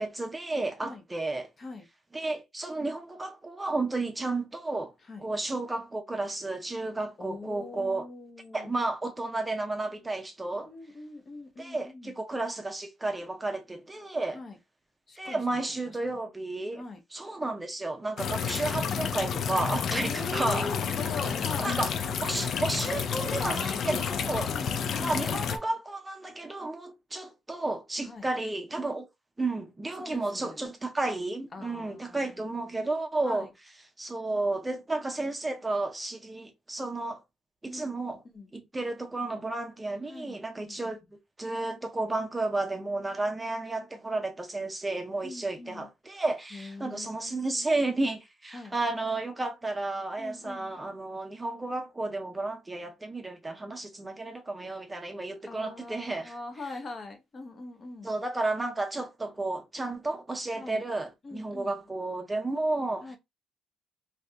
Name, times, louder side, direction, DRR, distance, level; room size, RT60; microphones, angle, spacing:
voice 1, 0.0-1.5 2.1-4.9 5.2-8.0 8.5-10.7 11.6-14.4 15.2-16.8 17.1-20.7 21.6-21.9 22.2-24.5 25.0-29.0 29.4-33.5 34.0-37.2 37.6-38.2 38.5-41.0 41.4-56.3 58.0-63.2, right 2 dB, 15° right, 0.6 m, -32 dB
voice 2, 5.0-5.3 7.2-8.8 10.6-12.2 14.3-14.6 15.1-16.2 16.7-17.0 19.9-21.8 24.4-25.3 28.0-28.3 29.9-30.7 31.5-32.8 33.2-33.5 37.7-37.9 38.3-38.5 40.1-41.1 45.2-45.9 46.5-48.0 48.5-48.8 50.2-50.8 55.3-58.1 60.5-60.8 61.2-61.8 63.0-63.2, left 3 dB, 35° left, 0.8 m, -43 dB
sound 1, 18.2-25.6, left 7 dB, 60° left, 0.4 m, -30 dB
2.7 x 2.5 x 3.2 m
cardioid pair, 110°, 0 cm